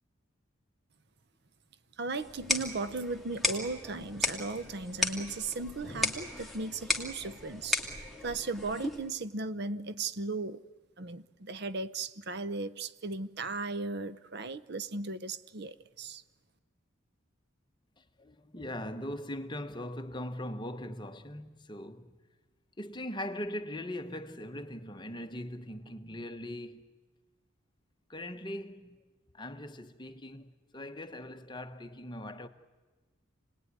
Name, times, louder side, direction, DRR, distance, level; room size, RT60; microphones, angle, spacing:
voice 1, 2.0-10.6 11.0-16.2, right 3 dB, 55° right, 0.8 m, -37 dB
sound 1, 2.2-9.1, left 2 dB, ahead, 2.2 m, -35 dB
voice 2, 18.0-22.2 22.8-26.9 28.1-29.0 29.3-32.5, left 1 dB, 20° left, 1.1 m, -40 dB
28.0 x 19.5 x 9.6 m
head